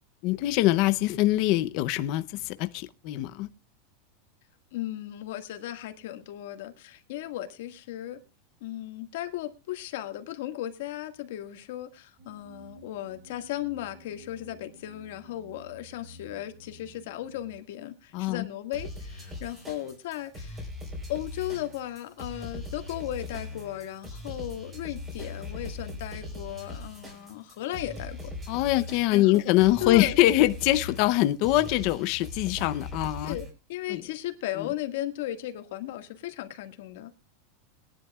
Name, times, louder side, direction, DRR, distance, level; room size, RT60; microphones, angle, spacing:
voice 1, 0.2-3.5 18.1-18.5 28.5-33.4 33.9-34.0 34.6-34.7, left 16 dB, 40° left, 0.6 m, -24 dB
voice 2, 4.7-8.2 8.6-20.6 21.1-28.3 29.1-29.4 29.8-30.2 33.2-37.1, left 13 dB, 60° left, 1.7 m, -36 dB
sound 1, 12.2-17.5, right 1 dB, 35° right, 6.8 m, -52 dB
sound 2, 18.7-33.5, left 2 dB, 15° right, 4.0 m, -40 dB
21.0 x 11.0 x 2.3 m
supercardioid pair, 175°, 0 cm